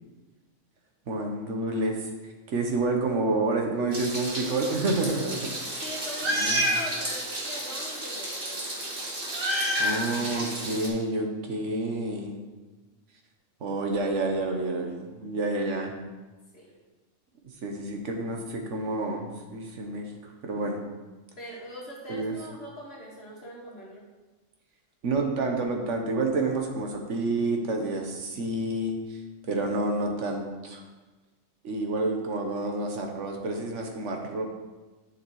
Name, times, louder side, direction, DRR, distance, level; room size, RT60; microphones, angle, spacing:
voice 1, 1.1-2.1 2.5-5.6 6.3-6.7 9.8-12.4 13.6-15.9 17.6-20.8 22.1-22.3 25.0-29.2 29.5-30.8 31.6-34.4, right 2 dB, 70° right, 2 dB, 1.2 m, -29 dB
Meow, 3.9-10.9, equal, 45° right, 1.5 m, -30 dB
voice 2, 5.8-8.6 16.5-16.7 21.4-24.0, left 1 dB, 50° left, -4 dB, 1.9 m, -42 dB
9.7 x 5.8 x 3.0 m, 1.2 s
omnidirectional pair, 1.4 m